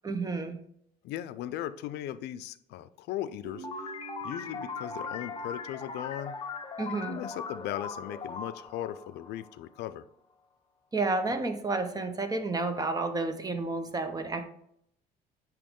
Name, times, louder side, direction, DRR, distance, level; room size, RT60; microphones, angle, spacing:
voice 1, 0.0-0.6 6.8-7.2 10.9-14.4, right 3 dB, 20° right, 8 dB, 0.8 m, -31 dB
voice 2, 1.0-3.9 4.2-6.4 7.1-10.1, left 12 dB, 80° left, 13 dB, 0.4 m, -37 dB
Guitar, 3.4-6.7, right 6 dB, 40° right, 1.1 m, -49 dB
sound 1, 3.6-9.9, left 5 dB, 30° left, 0.7 m, -40 dB
8.4 x 3.1 x 3.6 m, 0.71 s
cardioid pair, 110°, 17 cm